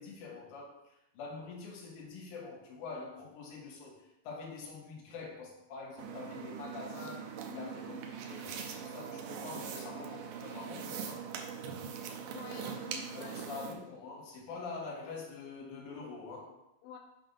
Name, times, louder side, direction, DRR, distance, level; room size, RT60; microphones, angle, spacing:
voice 1, 0.0-11.3 13.1-16.7, left 4 dB, 65° left, 2.7 m, -45 dB
sound 1, 6.0-13.7, right 7 dB, 85° right, 2.5 m, -42 dB
voice 2, 7.5-8.0 12.3-13.7 16.8-17.0, left 7 dB, 85° left, 2.3 m, -48 dB
7.5 x 3.6 x 5.4 m
omnidirectional pair, 4.0 m